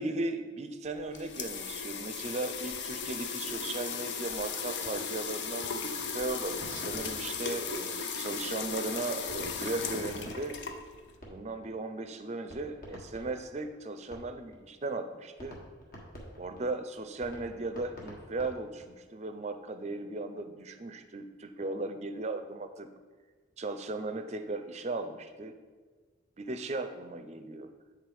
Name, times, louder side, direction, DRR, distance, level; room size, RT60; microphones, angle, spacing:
voice 1, 0.0-10.6 11.3-15.6 16.4-22.9 23.6-25.5 26.4-27.7, right 2 dB, 35° right, 8 dB, 0.5 m, -37 dB
sound 1, 0.9-11.1, left 5 dB, 70° left, 0.6 m, -37 dB
sound 2, 6.6-8.3 9.3-11.7 12.0-12.1 12.5-14.6 14.9-15.0 15.4-19.0, equal, 50° left, 1.5 m, -47 dB
8.6 x 3.7 x 4.8 m, 1.4 s
head